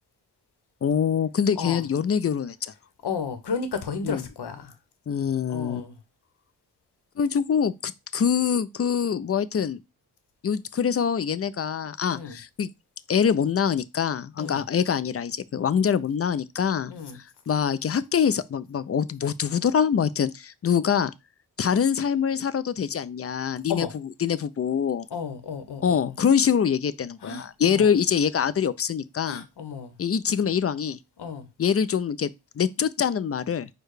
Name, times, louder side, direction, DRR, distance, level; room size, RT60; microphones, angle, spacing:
voice 1, 0.8-2.7 4.0-4.2 5.1-5.8 7.2-9.8 10.4-12.7 13.1-16.9 17.5-21.1 21.6-23.9 24.2-25.1 25.8-29.4 30.0-31.0 31.6-32.3 32.6-33.7, left 7 dB, 40° left, 0.4 m, -24 dB
voice 2, 3.0-4.7 5.5-6.0 12.1-12.4 14.4-14.6 16.9-17.2 23.7-23.9 25.1-26.1 27.2-27.9 29.2-29.9 31.2-31.5, left 5 dB, 80° left, 0.9 m, -33 dB
4.5 x 2.3 x 4.8 m
cardioid pair, 45°, 39 cm